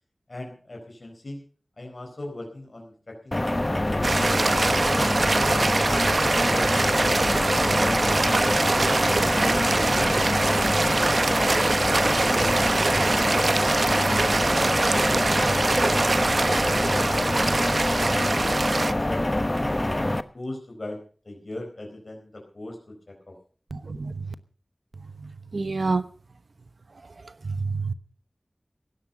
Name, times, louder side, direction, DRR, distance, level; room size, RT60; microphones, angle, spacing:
voice 1, 0.3-1.4 1.8-5.0 5.5-8.3 8.8-15.9 16.5-19.2 19.7-23.4, left 1 dB, 65° left, 4.4 m, -40 dB
sound 1, 3.3-20.2, left 1 dB, 30° left, 1.0 m, -25 dB
sound 2, 4.0-18.9, right 3 dB, 70° right, 0.7 m, -24 dB
voice 2, 23.7-24.3 25.2-26.0 27.4-27.9, right 3 dB, 90° right, 1.0 m, -28 dB
16.5 x 12.0 x 5.2 m
wide cardioid pair, 55°, 0 cm